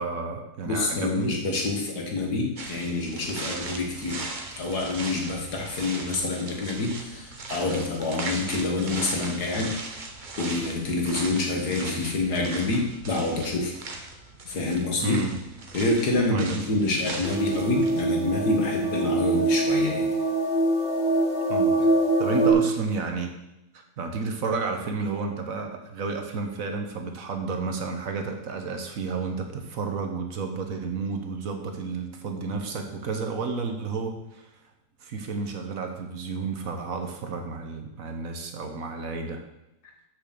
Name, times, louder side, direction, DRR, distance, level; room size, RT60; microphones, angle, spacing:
voice 1, 0.0-1.4 15.0-15.3 16.3-16.8 21.5-21.9 22.2-23.4 23.7-34.5 35.0-39.4, right 4 dB, 60° right, 4 dB, 1.3 m, -31 dB
voice 2, 0.7-4.3 4.6-10.1 10.4-13.7 14.4-15.2 15.7-20.1, left 2 dB, 75° left, 1 dB, 2.2 m, -27 dB
sound 1, 2.6-18.1, right 3 dB, 35° right, 1.0 m, -39 dB
sound 2, 17.2-22.5, right 2 dB, 35° left, 1.7 m, -24 dB
6.5 x 6.2 x 6.7 m, 0.91 s
omnidirectional pair, 1.7 m